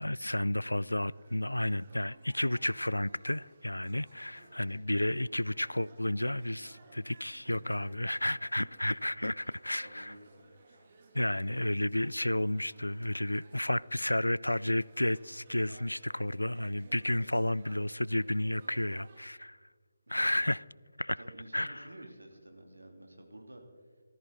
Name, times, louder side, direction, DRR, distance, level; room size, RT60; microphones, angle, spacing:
voice 1, 0.0-10.1 11.1-19.6 20.1-20.6 21.0-21.2 21.5-21.9, left 1 dB, 80° left, 0.3 m, -32 dB
sound 1, 0.8-19.3, right 3 dB, 40° right, 1.8 m, -60 dB
voice 2, 9.8-10.2 11.4-11.5 20.2-20.5 21.2-23.6, right 1 dB, 75° right, 2.8 m, -50 dB
17.5 x 14.0 x 4.0 m
figure-of-eight pair, 150°, 0 cm